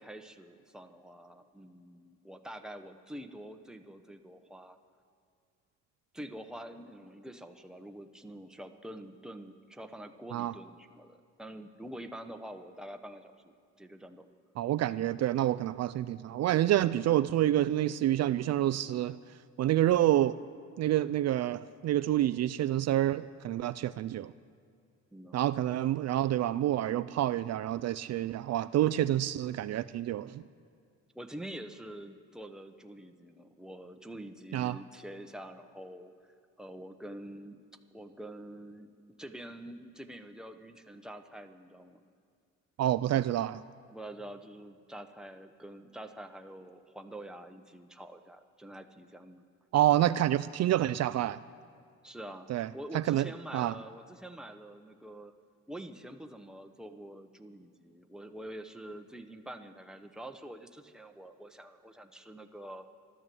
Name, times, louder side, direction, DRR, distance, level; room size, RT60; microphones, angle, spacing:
voice 1, 0.0-4.8 6.1-14.3 25.1-25.4 31.1-36.1 36.6-37.6 37.9-38.9 39.2-42.0 43.9-49.4 52.0-55.3 55.7-62.8, right 1 dB, ahead, 6 dB, 1.0 m, -46 dB
voice 2, 14.6-19.2 19.6-20.3 20.8-24.3 25.3-30.4 34.5-34.8 42.8-43.6 49.7-51.4 52.5-52.7 52.9-53.7, right 13 dB, 60° right, 14 dB, 0.4 m, -28 dB
13.5 x 12.5 x 7.7 m, 2.3 s
cardioid pair, 90°, 30 cm